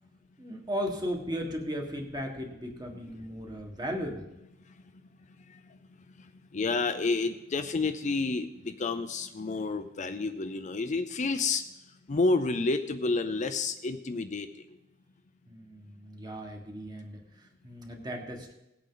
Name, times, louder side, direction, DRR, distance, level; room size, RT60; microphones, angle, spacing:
voice 1, 0.4-4.3 15.5-18.5, equal, 20° right, 2 dB, 1.6 m, -36 dB
voice 2, 6.2-11.6 12.1-14.7, left 3 dB, 40° left, 8 dB, 0.5 m, -30 dB
18.0 x 8.3 x 3.9 m, 0.93 s
head